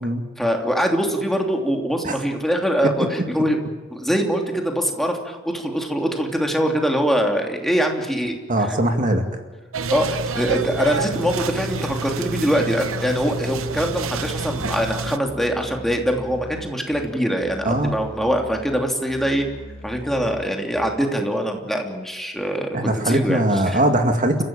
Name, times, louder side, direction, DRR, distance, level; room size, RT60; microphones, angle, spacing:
voice 1, 0.4-3.6 3.9-8.8 9.9-19.5 19.8-23.4 23.7-23.8, equal, ahead, 2 dB, 3.0 m, -23 dB
voice 2, 8.5-9.4 17.6-18.0 22.7-24.4, right 1 dB, 40° right, 5 dB, 2.3 m, -20 dB
sound 1, 9.7-15.2, right 4 dB, 85° right, 0.9 m, -28 dB
Musical instrument, 13.6-21.2, left 1 dB, 30° left, 7.8 m, -40 dB
30.0 x 15.5 x 9.0 m, 1.4 s
head